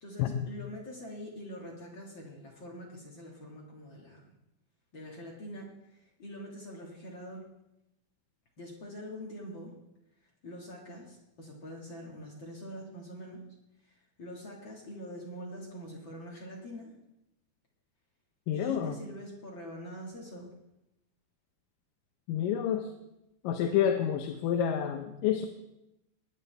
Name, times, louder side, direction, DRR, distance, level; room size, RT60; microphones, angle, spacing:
voice 1, 0.0-4.2 4.9-7.5 8.6-9.7 10.2-13.4 13.8-16.9 18.5-20.5, equal, 40° left, -2 dB, 2.0 m, -44 dB
voice 2, 18.5-19.0 22.3-22.9 23.4-25.5, left 9 dB, 75° left, 5 dB, 2.3 m, -29 dB
21.0 x 9.7 x 3.4 m, 0.87 s
omnidirectional pair, 4.3 m